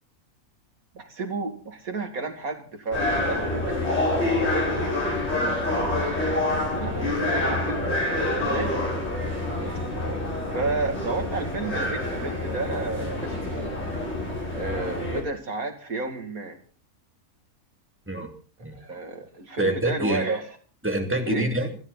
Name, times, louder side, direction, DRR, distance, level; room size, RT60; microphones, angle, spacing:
voice 1, 0.9-4.5 6.7-8.0 8.5-8.9 10.5-13.7 14.5-16.6 18.7-20.6 21.3-21.5, right 3 dB, 85° right, 6 dB, 3.0 m, -32 dB
sound 1, 2.9-15.2, left 2 dB, 50° left, 5.7 m, -27 dB
voice 2, 9.6-10.2 18.1-18.3 18.6-18.8 19.6-20.2 20.8-21.7, right 1 dB, 10° right, 3 dB, 2.8 m, -27 dB
29.0 x 10.5 x 4.1 m, 0.38 s
omnidirectional pair, 1.4 m